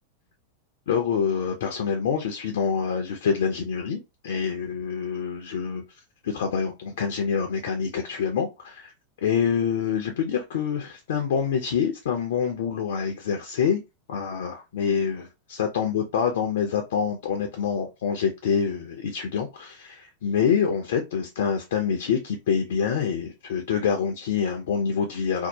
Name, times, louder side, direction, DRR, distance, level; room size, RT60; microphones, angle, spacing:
voice 1, 0.9-5.8 6.2-8.9 9.2-13.8 14.1-25.5, left 7 dB, 60° left, 0.5 m, -26 dB
2.6 x 2.1 x 2.8 m
figure-of-eight pair, 90°, 0 cm